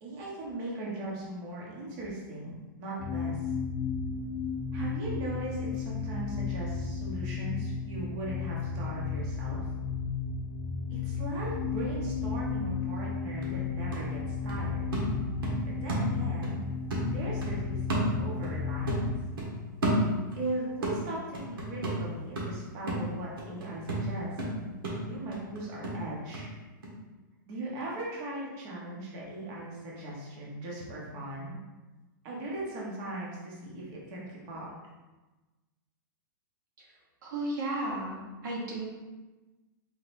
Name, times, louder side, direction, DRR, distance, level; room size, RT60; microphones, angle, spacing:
voice 1, 0.0-3.4 4.7-9.7 10.9-14.9 15.6-16.6 17.1-19.1 20.3-24.3 25.0-26.5 27.5-31.6 32.2-34.7, right 1 dB, 35° right, -5 dB, 1.1 m, -39 dB
sound 1, 3.0-19.2, left 5 dB, 40° left, 0.5 m, -34 dB
sound 2, 13.0-13.1 13.4-16.6 16.9-18.6 18.9-20.5 20.8-26.5 26.8-26.9, right 1 dB, 85° right, 1.4 m, -32 dB
voice 2, 37.2-38.9, right 1 dB, 60° right, -3 dB, 1.1 m, -34 dB
4.4 x 3.9 x 2.6 m, 1.2 s
hypercardioid pair, 155°, 11 cm